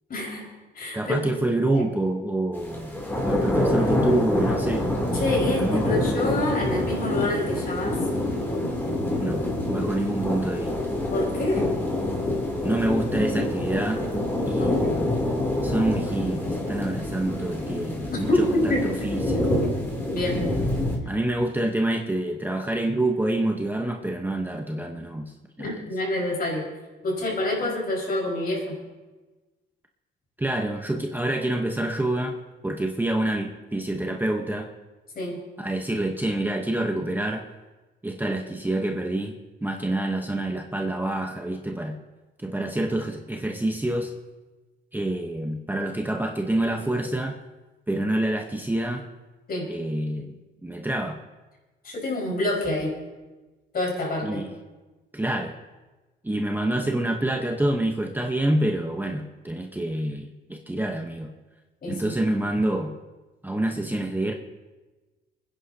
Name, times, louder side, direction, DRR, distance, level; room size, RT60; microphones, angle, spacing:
voice 1, 0.1-1.2 1.7-1.8 5.1-8.0 11.1-11.7 14.6-15.0 18.3-19.1 20.0-20.4 25.6-26.6 27.0-28.8 35.1-35.4 49.5-49.7 51.8-52.9 53.7-54.4 61.8-62.1, left 1 dB, 50° left, -1 dB, 4.9 m, -27 dB
voice 2, 0.9-2.9 3.2-4.8 5.4-5.9 9.2-9.4 9.7-10.7 12.6-14.0 14.4-15.1 15.6-19.7 21.0-25.8 30.4-32.4 32.6-34.7 35.6-37.4 38.0-39.3 39.6-42.0 42.4-44.1 44.9-47.4 47.9-49.0 49.7-50.3 50.6-51.2 54.2-54.5 55.1-55.6 56.2-61.3 61.9-62.9 63.4-64.3, right 1 dB, 10° right, 3 dB, 0.9 m, -27 dB
sound 1, 2.5-21.0, left 1 dB, 10° left, 2.9 m, -26 dB
28.5 x 10.0 x 2.8 m, 1.2 s
cardioid pair, 90°, 20 cm